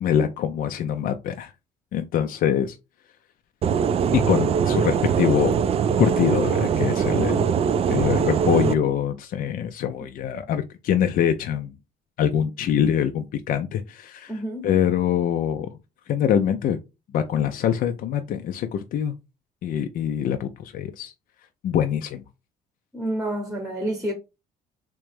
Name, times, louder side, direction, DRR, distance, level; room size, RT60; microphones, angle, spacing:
voice 1, 0.0-1.5 1.9-2.8 4.1-5.6 6.0-7.4 7.9-11.7 12.2-14.3 14.6-15.7 16.1-16.8 17.1-19.1 19.6-21.1 21.6-22.2, left 9 dB, 55° left, 0.4 m, -24 dB
sound 1, 3.6-8.7, right 7 dB, 35° right, 0.3 m, -22 dB
voice 2, 14.3-14.7 22.9-24.1, right 1 dB, 5° right, 0.9 m, -29 dB
3.3 x 3.0 x 3.3 m
cardioid pair, 110°, 17 cm